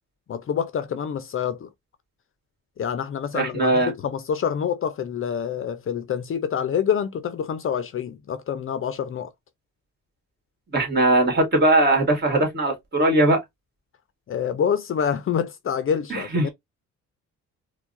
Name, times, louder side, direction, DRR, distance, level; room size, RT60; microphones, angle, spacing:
voice 1, 0.3-1.7 2.8-9.3 14.3-16.5, left 8 dB, 45° left, 0.5 m, -27 dB
voice 2, 3.3-3.9 10.7-13.4 16.1-16.5, right 2 dB, 35° right, 1.9 m, -20 dB
4.5 x 2.2 x 2.5 m
cardioid pair, 90°, 30 cm